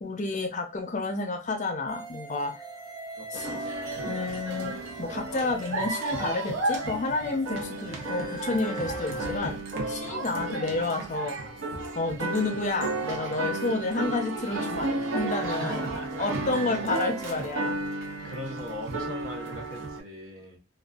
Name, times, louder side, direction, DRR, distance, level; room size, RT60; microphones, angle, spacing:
voice 1, 0.0-2.5 3.3-3.5 4.1-9.6 9.9-11.3 11.9-15.8 16.2-17.7, left 3 dB, 35° left, 4 dB, 0.5 m, -30 dB
sound 1, 1.9-9.4, right 1 dB, 20° right, 0.5 m, -40 dB
voice 2, 3.2-3.6 10.0-10.2 15.5-16.2 16.4-16.8 18.2-20.6, equal, 90° right, 1 dB, 0.9 m, -40 dB
sound 2, 3.3-20.0, right 2 dB, 70° right, 0.6 m, -33 dB
2.5 x 2.3 x 2.3 m, 0.28 s
head